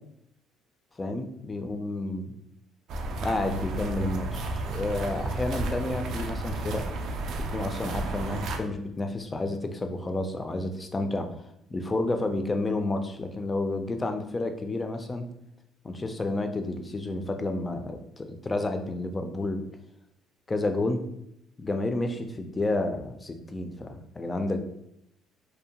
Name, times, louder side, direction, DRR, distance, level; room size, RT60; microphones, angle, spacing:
voice 1, 1.0-2.3 3.2-6.8 7.5-11.4 11.7-15.3 15.8-19.6 20.5-21.0 21.6-24.6, left 2 dB, 20° left, 6 dB, 0.3 m, -30 dB
sound 1, 2.9-8.6, right 2 dB, 60° right, 0.3 m, -32 dB
2.6 x 2.1 x 2.8 m, 0.78 s
cardioid pair, 115°, 0 cm